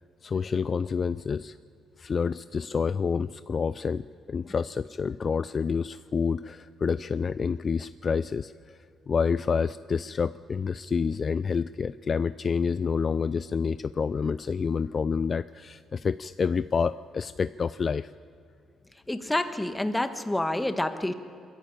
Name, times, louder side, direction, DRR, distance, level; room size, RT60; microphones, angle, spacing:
voice 1, 0.2-1.6 2.0-8.5 9.1-18.1, left 5 dB, 40° left, 15 dB, 0.4 m, -28 dB
voice 2, 19.1-21.1, left 1 dB, 10° left, 9 dB, 1.5 m, -28 dB
22.5 x 14.5 x 8.8 m, 2.4 s
cardioid pair, 90°, 0 cm